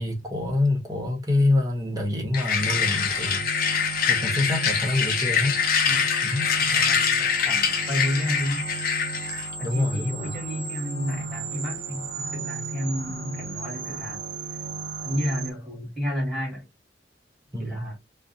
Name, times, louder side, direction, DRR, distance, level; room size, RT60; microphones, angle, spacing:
voice 1, 0.0-5.6 6.2-6.5 9.6-10.3 17.5-17.9, left 2 dB, 20° right, 0.8 m, -26 dB
sound 1, 2.3-9.5, left 7 dB, 50° left, 0.6 m, -24 dB
sound 2, 2.6-15.5, right 4 dB, 55° right, 0.7 m, -35 dB
voice 2, 6.6-8.7 9.6-14.2 15.0-16.7 17.6-18.0, equal, ahead, 1.4 m, -31 dB
2.5 x 2.0 x 2.5 m
head